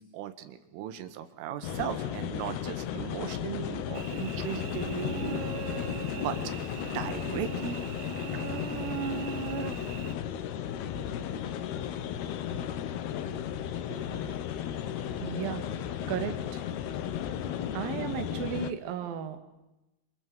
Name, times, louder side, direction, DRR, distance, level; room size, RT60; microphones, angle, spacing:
voice 1, 0.0-5.4 6.1-7.8, right 10 dB, 90° right, 10 dB, 4.2 m, -37 dB
sound 1, 1.6-18.7, left 9 dB, 70° left, 2.9 m, -34 dB
Cricket / Buzz, 3.9-10.1, right 11 dB, 70° right, 3.0 m, -39 dB
voice 2, 13.9-14.3 15.2-15.6 16.1-16.6 17.6-19.4, right 8 dB, 55° right, 8 dB, 3.3 m, -35 dB
28.0 x 26.0 x 7.9 m, 0.98 s
omnidirectional pair, 5.6 m